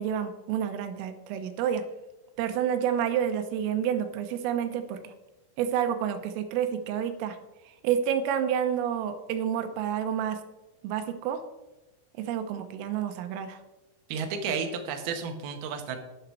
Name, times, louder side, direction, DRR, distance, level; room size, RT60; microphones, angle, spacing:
voice 1, 0.0-1.8 2.4-5.1 5.6-7.4 7.8-10.4 10.8-11.4 12.2-13.6, right 9 dB, 85° right, 8 dB, 3.5 m, -29 dB
voice 2, 14.1-16.0, right 6 dB, 70° right, 5 dB, 2.6 m, -32 dB
12.0 x 10.0 x 4.7 m, 1.0 s
omnidirectional pair, 6.0 m